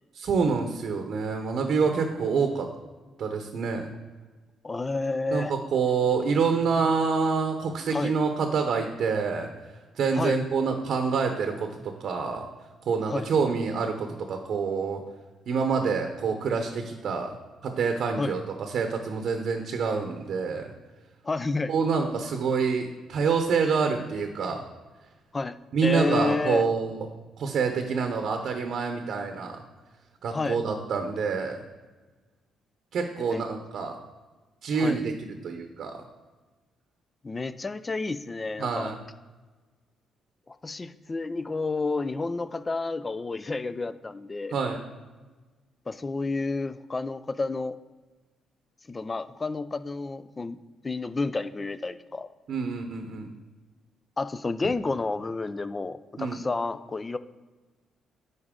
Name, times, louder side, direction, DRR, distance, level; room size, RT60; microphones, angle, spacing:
voice 1, 0.2-2.7 3.2-3.9 5.3-9.5 10.0-12.4 12.9-15.0 15.5-17.3 17.6-20.7 21.7-24.6 25.7-27.0 27.4-29.6 30.2-31.6 32.9-34.0 34.6-35.1 35.4-36.0 38.6-38.9 44.5-44.8 52.5-53.3 56.2-56.4, right 5 dB, 65° right, 5 dB, 0.8 m, -27 dB
voice 2, 4.6-5.5 7.9-8.1 10.1-10.4 13.1-13.3 18.2-18.3 21.2-21.7 25.3-26.7 30.3-30.6 33.3-33.4 34.7-35.0 37.2-38.9 40.5-44.6 45.9-47.8 48.9-50.6 50.8-52.3 54.2-57.2, left 3 dB, 25° left, 14 dB, 0.3 m, -30 dB
9.8 x 4.1 x 3.7 m, 1.3 s
cardioid pair, 90°, 0 cm